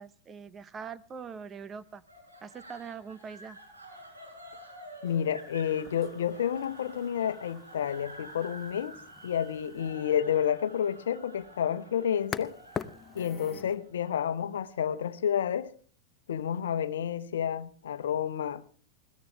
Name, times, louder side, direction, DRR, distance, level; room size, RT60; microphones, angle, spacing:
voice 1, 0.0-2.0 2.4-3.6, right 6 dB, 25° right, 0.9 m, -42 dB
sound 1, 2.1-15.2, right 1 dB, 80° right, 6.2 m, -50 dB
voice 2, 5.0-12.5 13.1-15.7 16.3-18.6, left 9 dB, 65° left, 1.1 m, -30 dB
sound 2, 5.1-13.8, left 7 dB, 20° left, 0.8 m, -45 dB
21.5 x 17.0 x 3.4 m
figure-of-eight pair, 90°, 0 cm